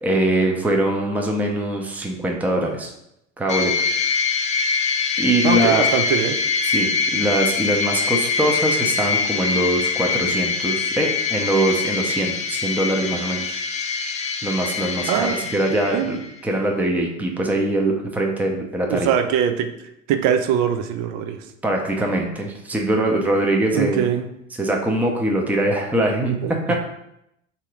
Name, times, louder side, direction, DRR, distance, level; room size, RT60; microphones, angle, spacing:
voice 1, 0.0-2.9 3.4-3.7 5.2-5.8 6.6-13.6 14.4-16.2 16.4-19.1 21.6-24.0 24.6-26.8, right 1 dB, 5° right, 1 dB, 0.7 m, -22 dB
sound 1, 3.5-16.3, left 5 dB, 20° left, 0.3 m, -24 dB
voice 2, 5.4-6.4 15.1-15.4 15.9-16.1 18.9-19.7 20.1-21.4 23.7-24.3 26.4-26.5, right 8 dB, 50° right, 7 dB, 0.6 m, -22 dB
3.7 x 2.8 x 4.8 m, 0.81 s
figure-of-eight pair, 70°, 38 cm